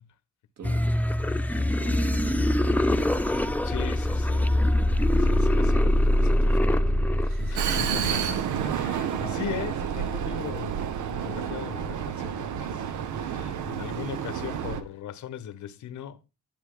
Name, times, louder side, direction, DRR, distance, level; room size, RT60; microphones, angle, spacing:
sound 1, 0.6-8.6, left 1 dB, 5° left, 0.9 m, -23 dB
voice 1, 1.8-3.1 7.2-7.6 12.8-13.7, right 5 dB, 65° right, 3.0 m, -43 dB
voice 2, 3.6-4.8 5.1-6.9 7.2-10.8 11.1-12.9 13.2-16.2, left 10 dB, 75° left, 1.2 m, -39 dB
Vehicle, 7.5-14.8, right 8 dB, 80° right, 1.5 m, -30 dB
11.0 x 10.5 x 3.9 m
cardioid pair, 90°, 30 cm